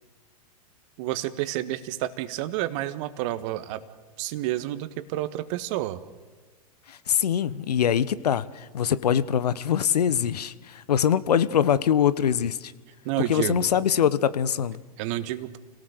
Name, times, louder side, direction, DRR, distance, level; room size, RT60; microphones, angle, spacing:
voice 1, 1.0-3.8 4.2-6.0 13.0-13.7 15.0-15.6, right 14 dB, 50° right, 11 dB, 1.6 m, -30 dB
voice 2, 6.9-12.7 13.3-14.8, left 9 dB, 70° left, 15 dB, 1.1 m, -23 dB
29.5 x 18.0 x 6.7 m, 1.3 s
figure-of-eight pair, 100°, 21 cm